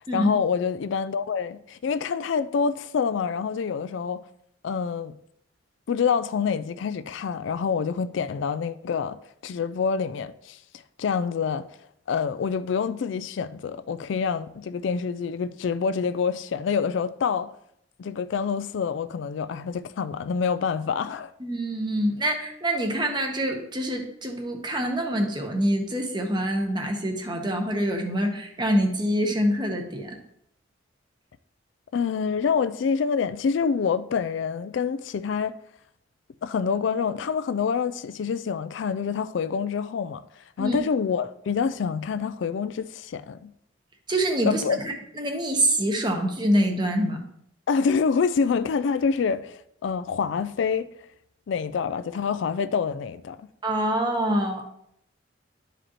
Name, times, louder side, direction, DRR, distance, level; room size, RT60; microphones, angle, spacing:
voice 1, 0.1-4.2 4.6-5.1 5.9-9.2 9.4-10.6 11.0-11.7 12.1-17.5 18.0-21.3 31.9-35.5 36.4-40.2 40.6-43.5 44.4-44.8 47.7-50.9 51.5-53.4, left 6 dB, 70° left, 0.3 m, -26 dB
voice 2, 21.4-30.1 40.6-40.8 44.1-47.2 53.6-54.6, right 1 dB, 25° right, 1.0 m, -25 dB
11.0 x 5.0 x 3.0 m
head